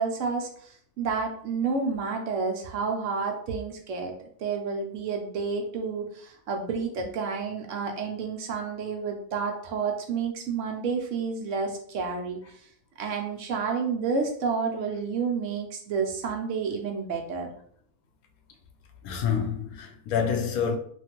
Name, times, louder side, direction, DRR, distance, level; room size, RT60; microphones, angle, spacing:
voice 1, 0.0-12.7 13.0-17.5, right 5 dB, 70° right, 0.8 m, -30 dB
voice 2, 19.0-20.8, left 7 dB, 85° left, 1.1 m, -27 dB
3.0 x 2.5 x 2.8 m
omnidirectional pair, 1.5 m